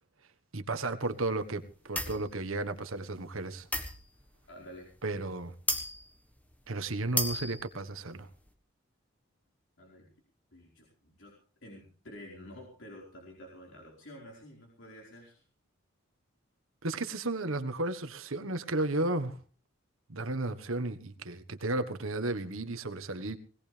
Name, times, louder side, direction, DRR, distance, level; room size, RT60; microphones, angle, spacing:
voice 1, 0.5-1.6 1.9-3.7 5.0-5.5 6.7-8.3 16.8-19.4 20.1-23.4, right 2 dB, 80° right, 1.5 m, -33 dB
sound 1, 2.0-2.3 3.7-4.4 5.2-5.3 5.7-6.1 6.5-6.6 7.0-7.8, left 1 dB, 10° left, 1.5 m, -33 dB
voice 2, 4.5-4.9 9.8-10.1 10.5-11.4 11.6-15.4, equal, 60° left, 4.8 m, -50 dB
20.5 x 17.5 x 3.4 m
head